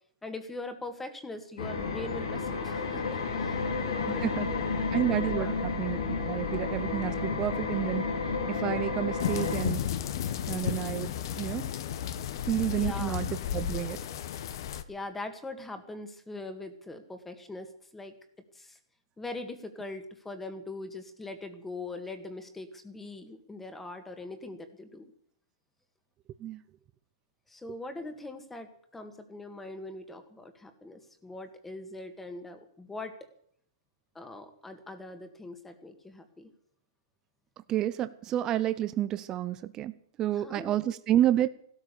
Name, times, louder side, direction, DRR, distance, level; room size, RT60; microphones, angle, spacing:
voice 1, 0.2-4.7 5.3-5.5 12.7-13.2 14.9-18.1 18.5-18.8 19.2-25.1 27.5-33.2 34.2-36.5 40.4-40.8, left 2 dB, 5° left, 8 dB, 1.9 m, -42 dB
sound 1, 1.6-9.6, left 4 dB, 85° left, 4.4 m, -31 dB
voice 2, 4.1-4.5 4.9-5.5 5.8-8.1 8.5-9.8 10.5-11.7 12.5-14.0 26.4-26.6 37.7-39.9 40.2-41.5, right 12 dB, 25° right, 13 dB, 0.7 m, -30 dB
sound 2, 9.2-14.8, left 9 dB, 55° left, 1.2 m, -33 dB
16.0 x 13.0 x 6.9 m, 0.66 s
hypercardioid pair, 140°, 3 cm